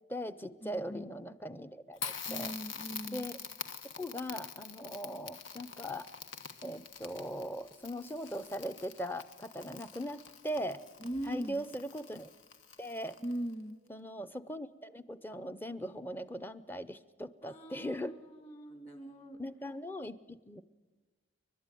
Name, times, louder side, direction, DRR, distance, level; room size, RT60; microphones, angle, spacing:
voice 1, 0.1-2.5 3.1-3.3 4.0-6.1 6.6-10.2 10.4-10.8 11.2-12.3 12.8-13.2 13.9-18.2 19.4-20.6, equal, 10° left, 14 dB, 0.6 m, -40 dB
voice 2, 0.6-1.1 2.3-3.3 11.0-11.6 13.2-13.8 17.4-19.4, right 1 dB, 30° left, 7 dB, 2.8 m, -41 dB
Crackle, 2.0-13.5, left 6 dB, 85° left, 1.3 m, -46 dB
30.0 x 12.0 x 9.2 m, 1.3 s
head